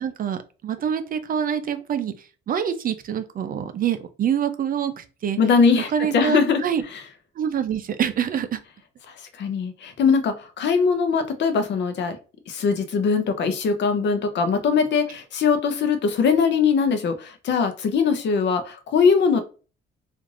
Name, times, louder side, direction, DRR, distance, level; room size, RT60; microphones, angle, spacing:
voice 1, 0.0-5.4 5.9-6.8 7.4-8.6, right 8 dB, 45° right, 10 dB, 0.4 m, -26 dB
voice 2, 5.4-6.6 9.4-12.2 12.5-19.4, left 5 dB, 65° left, 8 dB, 0.6 m, -21 dB
3.1 x 2.5 x 2.4 m, 0.35 s
cardioid pair, 90°, 20 cm